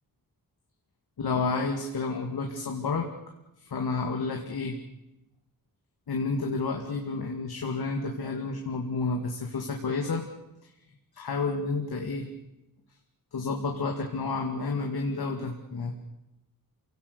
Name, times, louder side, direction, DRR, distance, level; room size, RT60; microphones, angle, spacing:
voice 1, 1.2-3.1 3.7-4.8 6.1-10.2 11.1-12.3 13.3-15.9, left 3 dB, 85° left, 2 dB, 2.4 m, -30 dB
28.5 x 17.5 x 6.9 m, 0.93 s
wide cardioid pair, 135°, 37 cm